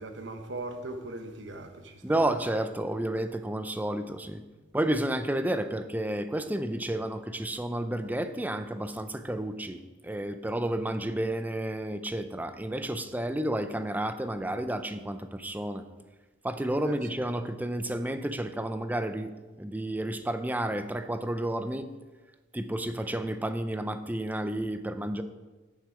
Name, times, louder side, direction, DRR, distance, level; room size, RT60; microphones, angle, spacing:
voice 1, 0.0-2.3 16.9-17.0, right 2 dB, 65° right, 6 dB, 1.0 m, -39 dB
voice 2, 2.0-4.4 4.7-15.9 16.4-19.3 19.6-21.9 22.5-25.2, right 1 dB, 10° right, 10 dB, 0.4 m, -31 dB
9.6 x 6.5 x 4.9 m, 1.3 s
head